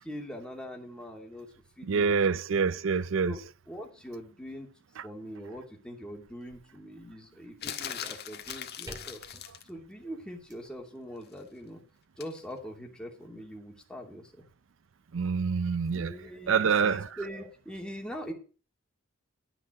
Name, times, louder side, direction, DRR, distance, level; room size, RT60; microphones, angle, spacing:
voice 1, 0.0-1.5 1.8-2.8 3.2-4.7 5.0-9.2 9.6-11.8 12.2-14.4 15.9-18.3, equal, 5° left, 2.6 m, -42 dB
voice 2, 1.9-3.3 15.1-16.1 16.5-17.0, right 5 dB, 70° right, 0.5 m, -26 dB
sound 1, 6.4-6.8 8.1-10.7, equal, 20° right, 2.6 m, -51 dB
sound 2, 7.6-9.7 12.2-12.4, left 9 dB, 55° left, 1.5 m, -39 dB
12.5 x 6.0 x 7.6 m
head